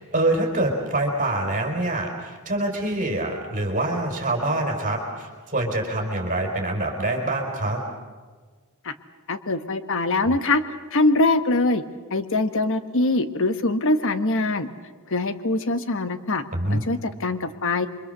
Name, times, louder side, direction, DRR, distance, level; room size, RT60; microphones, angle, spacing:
voice 1, 0.0-7.8 16.5-16.8, right 1 dB, 35° right, 1 dB, 4.6 m, -25 dB
voice 2, 9.3-10.6 10.9-11.8 12.1-14.7 15.1-16.4 16.7-17.9, left 2 dB, 65° left, 10 dB, 1.4 m, -23 dB
28.5 x 24.5 x 6.8 m, 1.5 s
head